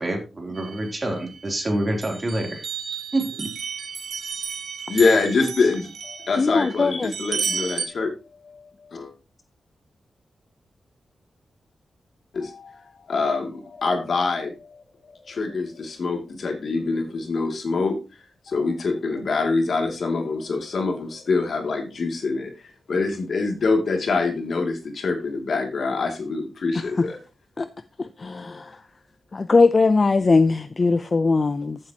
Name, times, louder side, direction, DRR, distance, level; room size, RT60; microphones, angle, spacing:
voice 1, 0.0-2.7 3.1-3.5, right 1 dB, 30° right, 3.2 m, -27 dB
sound 1, 0.5-1.6 2.0-7.8, right 6 dB, 65° right, 1.8 m, -33 dB
voice 2, 4.9-8.1 8.4-9.1 12.3-22.5 22.9-27.2, left 4 dB, 60° left, 2.6 m, -25 dB
voice 3, 6.4-7.1 26.7-27.1 27.6-27.7 28.0-28.8 29.3-31.8, left 3 dB, 35° left, 0.5 m, -20 dB
14.5 x 7.6 x 2.9 m
wide cardioid pair, 115°, 0 cm